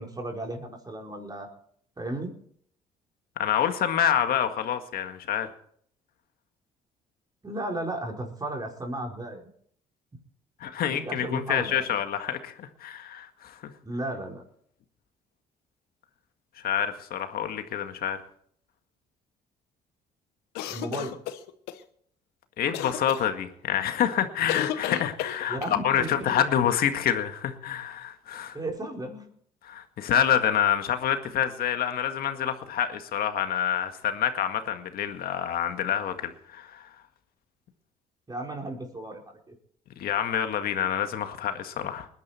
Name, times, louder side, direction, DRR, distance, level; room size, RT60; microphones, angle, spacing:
voice 1, 0.0-1.5 2.0-2.4 7.4-9.5 10.9-11.9 13.8-14.4 20.7-21.2 25.5-26.5 28.5-29.2 38.3-39.2 39.5-39.6, right 1 dB, 25° right, 1 dB, 4.6 m, -34 dB
voice 2, 3.4-5.5 10.6-13.6 16.6-18.2 22.6-28.6 29.6-36.9 40.0-42.1, left 9 dB, 70° left, 7 dB, 1.9 m, -27 dB
sound 1, 20.5-21.8 22.7-23.2 24.5-25.8, left 11 dB, 85° left, 1.0 m, -33 dB
20.5 x 10.5 x 4.4 m, 0.63 s
supercardioid pair, 65°, 16 cm